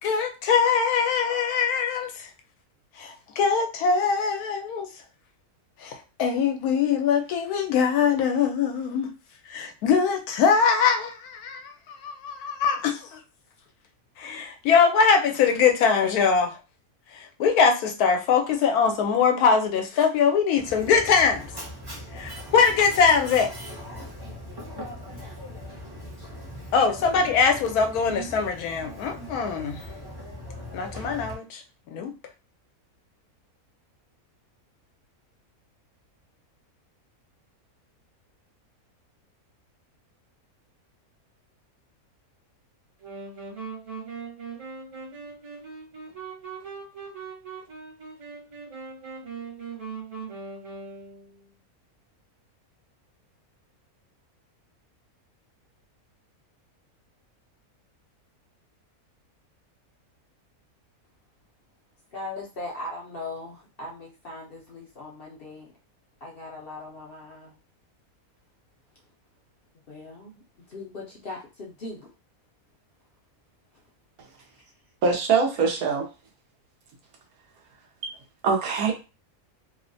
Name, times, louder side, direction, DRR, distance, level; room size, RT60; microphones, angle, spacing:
voice 1, 0.0-2.3 3.0-4.9 5.8-9.1 9.5-13.2 14.2-16.6 17.1-21.5 22.1-23.5 26.7-29.8 30.7-31.6 31.9-32.1, left 6 dB, 85° left, 1.1 m, -22 dB
Mechanisms, 20.6-31.3, equal, 20° right, 0.6 m, -40 dB
sound 1, 43.0-51.5, right 5 dB, 55° right, 1.5 m, -40 dB
voice 2, 62.1-65.7 66.2-67.6 69.9-72.1, left 2 dB, 55° left, 0.7 m, -39 dB
voice 3, 75.0-76.0 78.0-78.2 78.4-79.0, right 5 dB, 80° right, 1.2 m, -23 dB
3.0 x 2.1 x 2.5 m
omnidirectional pair, 1.5 m